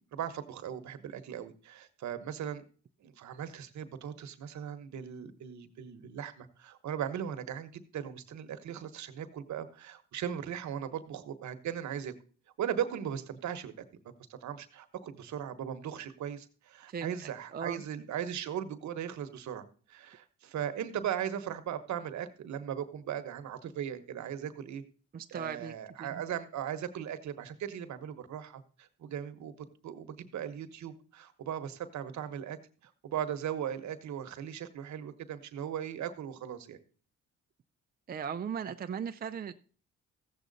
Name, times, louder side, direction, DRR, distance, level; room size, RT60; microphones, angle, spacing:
voice 1, 0.0-2.6 3.0-12.1 12.6-13.7 14.3-24.8 25.3-29.5 29.8-32.6 33.0-36.8, right 9 dB, 70° right, 9 dB, 1.2 m, -38 dB
voice 2, 16.9-17.8 25.1-26.2 38.1-39.5, right 7 dB, 30° right, 8 dB, 0.5 m, -38 dB
15.0 x 7.5 x 4.0 m, 0.42 s
cardioid pair, 90°, 30 cm